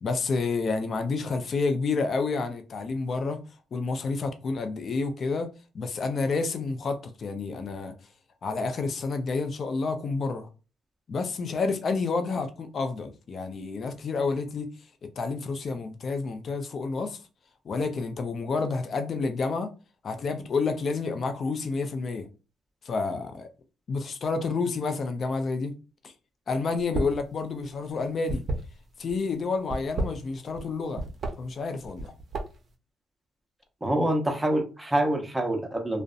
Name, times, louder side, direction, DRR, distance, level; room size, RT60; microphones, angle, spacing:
voice 1, 0.0-3.4 3.7-5.5 5.7-7.9 8.4-10.5 11.1-14.7 15.2-17.2 17.6-19.7 20.0-22.3 22.8-23.5 23.9-25.7 26.0-26.1 26.5-28.4 29.0-31.0 31.4-32.1, left 4 dB, 50° left, 0.4 m, -29 dB
sound 1, 26.8-27.2 27.5-29.1 29.6-30.7 30.9-31.3 31.8-32.7, right 2 dB, 45° right, 0.6 m, -31 dB
voice 2, 33.8-36.0, right 1 dB, 10° right, 0.7 m, -26 dB
2.6 x 2.1 x 2.4 m
cardioid pair, 90°, 0 cm